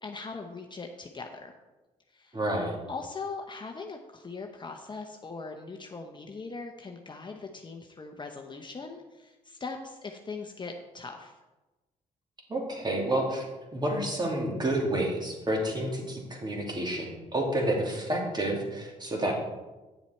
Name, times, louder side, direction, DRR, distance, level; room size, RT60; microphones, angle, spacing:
voice 1, 0.0-1.5 2.1-2.4 2.9-11.4, left 4 dB, 30° left, 3 dB, 0.9 m, -40 dB
voice 2, 2.3-2.8 12.5-19.3, right 1 dB, 30° right, 0 dB, 2.6 m, -29 dB
9.2 x 7.1 x 4.4 m, 1.1 s
supercardioid pair, 65°, 15 cm